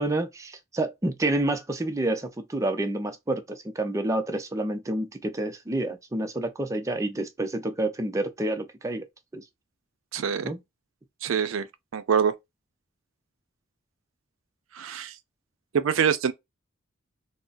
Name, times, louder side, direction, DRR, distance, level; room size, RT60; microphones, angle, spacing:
voice 1, 0.0-9.0 9.3-9.4 10.4-10.6, right 1 dB, 15° right, 0.4 m, -28 dB
voice 2, 10.1-10.5 11.2-11.7 11.9-12.3 14.7-15.1 15.7-16.3, right 7 dB, 85° right, 0.4 m, -24 dB
3.7 x 2.0 x 2.4 m
head